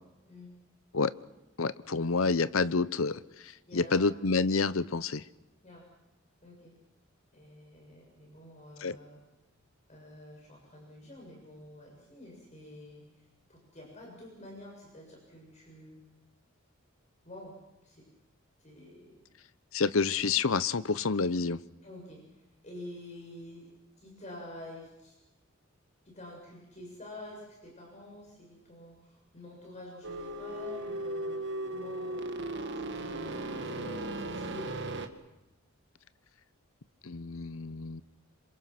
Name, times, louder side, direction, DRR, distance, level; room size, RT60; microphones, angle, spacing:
voice 1, 1.6-5.2 8.8-9.0 19.7-21.6 37.0-38.0, left 4 dB, 75° left, 16 dB, 0.8 m, -28 dB
voice 2, 3.7-4.1 5.6-5.9 6.4-6.7 7.3-9.2 9.9-16.0 17.2-17.6 17.8-18.1 18.6-19.2 21.8-23.7 24.0-25.1 26.1-32.2 32.8-34.7, left 1 dB, 35° left, -1 dB, 7.0 m, -48 dB
sound 1, 30.0-35.1, right 1 dB, 60° right, 1.9 m, -36 dB
28.0 x 26.0 x 6.0 m, 0.99 s
head